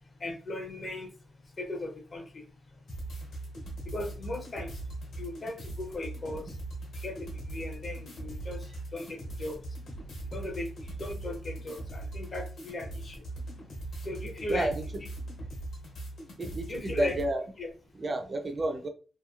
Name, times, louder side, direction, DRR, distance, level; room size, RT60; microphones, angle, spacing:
voice 1, 0.2-1.1 1.6-2.4 3.8-4.8 5.2-6.6 7.0-9.6 10.3-13.2 14.0-14.7 16.7-17.2 17.6-17.7, left 1 dB, 35° left, 4 dB, 0.6 m, -37 dB
sound 1, 2.9-17.3, right 2 dB, 65° left, 1.2 m, -40 dB
voice 2, 14.5-14.8 16.4-17.4 18.0-18.9, right 2 dB, 30° right, 5 dB, 0.3 m, -31 dB
2.8 x 2.6 x 2.3 m, 0.36 s
wide cardioid pair, 140°, 0 cm